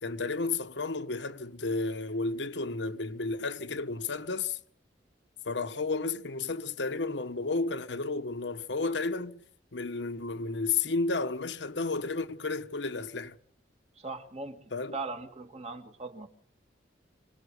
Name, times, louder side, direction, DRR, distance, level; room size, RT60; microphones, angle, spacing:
voice 1, 0.0-4.6 5.4-9.4 9.7-13.4 14.7-14.9, left 3 dB, 75° left, 1.2 m, -32 dB
voice 2, 14.0-14.6 14.9-16.3, right 3 dB, 35° right, 2.3 m, -39 dB
26.5 x 19.5 x 8.2 m
head